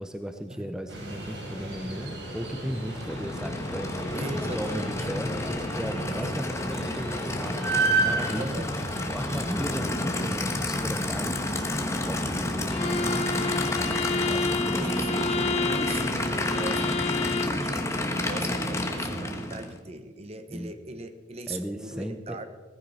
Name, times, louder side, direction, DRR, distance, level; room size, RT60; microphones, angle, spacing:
voice 1, 0.0-8.5 9.1-11.7 12.1-13.2 14.2-15.1 20.5-20.8 21.5-22.4, equal, 5° right, 6 dB, 0.6 m, -36 dB
sound 1, 0.9-9.9, right 3 dB, 85° right, 4.1 m, -32 dB
Aircraft / Idling, 2.8-19.8, left 1 dB, 15° left, 1.3 m, -30 dB
voice 2, 4.1-4.9 6.1-6.4 8.3-8.7 13.8-14.4 14.8-22.4, right 2 dB, 35° right, 10 dB, 0.9 m, -39 dB
Bowed string instrument, 12.7-17.6, left 4 dB, 35° left, 0.8 m, -30 dB
16.5 x 15.0 x 4.2 m, 1.5 s
head